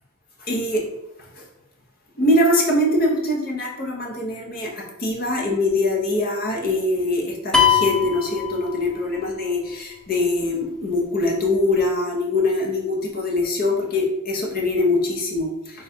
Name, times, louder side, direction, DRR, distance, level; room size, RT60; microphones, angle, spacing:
voice 1, 0.4-0.8 1.4-1.5 2.2-15.8, left 2 dB, 45° left, -1 dB, 0.8 m, -23 dB
sound 1, 7.5-9.2, left 7 dB, 5° left, 0.3 m, -21 dB
3.6 x 2.4 x 4.3 m, 0.92 s
head